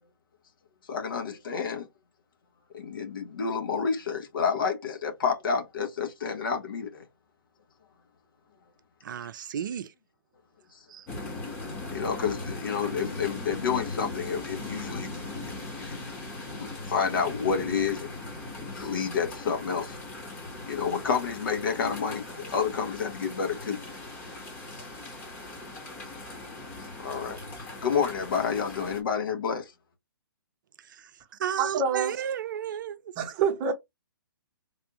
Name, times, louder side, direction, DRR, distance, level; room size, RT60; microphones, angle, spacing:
voice 1, 0.9-1.9 2.7-7.0 11.9-16.1 16.5-18.2 18.7-20.0 20.7-23.8 27.0-27.4 27.8-29.7, left 6 dB, 65° left, 1.2 m, -29 dB
voice 2, 9.0-9.9 10.9-11.1 31.4-33.1, right 9 dB, 60° right, 0.4 m, -33 dB
sound 1, 11.1-29.0, left 2 dB, 15° left, 1.0 m, -39 dB
voice 3, 31.6-32.1 33.2-33.7, right 6 dB, 30° right, 0.9 m, -26 dB
3.4 x 2.5 x 2.9 m
hypercardioid pair, 130°, 12 cm